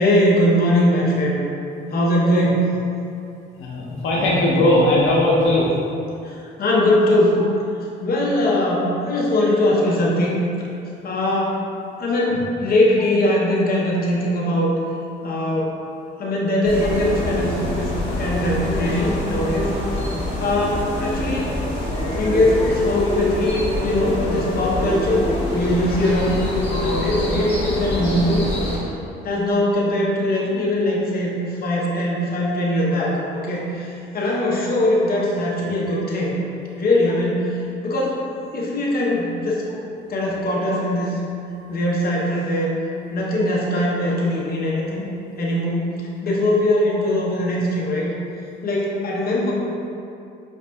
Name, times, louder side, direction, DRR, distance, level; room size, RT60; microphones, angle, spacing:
voice 1, 0.0-1.4 1.9-2.7 6.2-7.4 8.0-10.4 11.0-11.6 12.0-14.7 15.2-15.8 16.2-19.7 20.4-21.6 22.0-28.4 28.7-28.8 29.2-36.4 36.8-38.2 38.5-39.7 40.1-41.2 41.7-42.7 43.1-45.1 45.4-45.9 46.2-48.1 48.6-49.5, left 1 dB, 50° left, -4 dB, 0.8 m, -21 dB
voice 2, 3.6-5.7 18.9-19.0 44.7-44.9, left 1 dB, 85° left, -6 dB, 0.6 m, -18 dB
sound 1, 16.6-28.8, left 1 dB, 35° left, 1.3 m, -25 dB
5.1 x 2.5 x 2.2 m, 2.6 s
cardioid pair, 90°, 20 cm